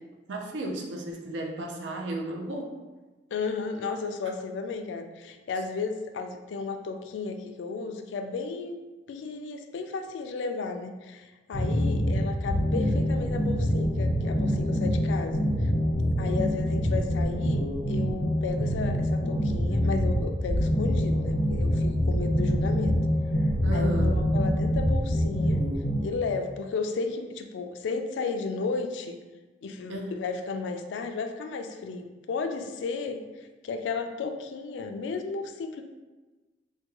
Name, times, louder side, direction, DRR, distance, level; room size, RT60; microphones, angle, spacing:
voice 1, 0.3-2.8 23.6-24.2 29.9-30.1, right 1 dB, 90° right, 2 dB, 0.5 m, -33 dB
voice 2, 3.3-8.8 9.1-15.7 16.2-22.9 23.7-25.6 26.0-29.2 29.6-33.2 33.6-35.8, left 4 dB, 90° left, 6 dB, 0.3 m, -34 dB
sound 1, 11.5-26.0, equal, 70° left, 0.7 m, -25 dB
3.5 x 2.2 x 2.9 m, 1.2 s
head